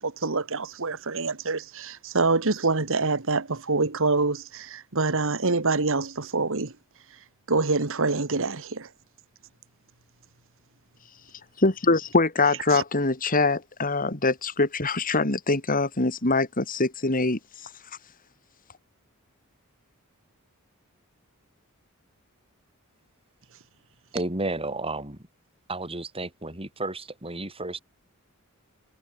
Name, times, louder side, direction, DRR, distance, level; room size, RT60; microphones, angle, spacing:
voice 1, 0.0-6.7 7.5-8.9 12.7-12.8, right 3 dB, 60° right, 1.8 m, -26 dB
voice 2, 11.6-17.7, left 3 dB, 40° left, 2.8 m, -24 dB
voice 3, 24.1-25.2 25.7-27.8, right 2 dB, 25° right, 7.3 m, -32 dB
head